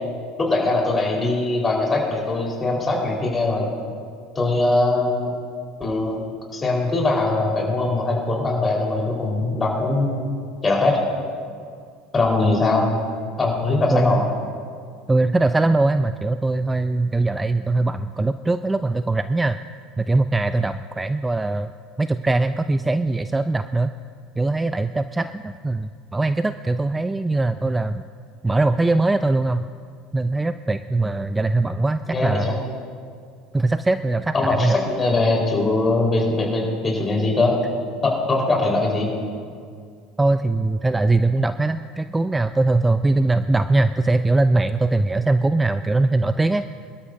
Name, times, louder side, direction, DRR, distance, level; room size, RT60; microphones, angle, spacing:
voice 1, 0.4-3.7 4.3-5.3 5.8-6.2 6.5-10.1 10.6-11.0 12.1-12.9 13.4-14.2 32.1-32.6 34.3-37.5 38.0-39.1, left 2 dB, 25° left, -2 dB, 4.2 m, -21 dB
voice 2, 15.1-19.6 20.0-21.7 22.0-23.9 24.4-28.0 28.4-29.6 30.1-32.5 33.5-34.3 34.6-34.8 40.2-46.6, right 2 dB, 15° right, 12 dB, 0.4 m, -21 dB
23.5 x 12.5 x 2.7 m, 2.2 s
hypercardioid pair, 70°, 0 cm